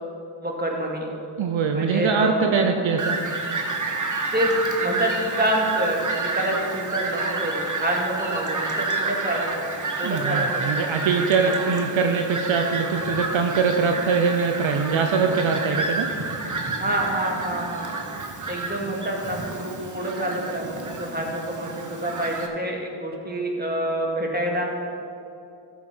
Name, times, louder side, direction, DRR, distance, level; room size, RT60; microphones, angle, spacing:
voice 1, 0.4-1.1 1.7-2.9 4.3-10.7 11.4-11.7 16.7-17.9 18.5-20.6 21.0-24.6, right 1 dB, 20° right, -1 dB, 2.3 m, -27 dB
voice 2, 1.4-3.2 10.0-16.1, right 5 dB, 70° right, 4 dB, 0.8 m, -23 dB
Fowl, 3.0-22.5, right 3 dB, 40° right, 1.4 m, -29 dB
14.0 x 7.1 x 4.4 m, 2.7 s
cardioid pair, 50°, 48 cm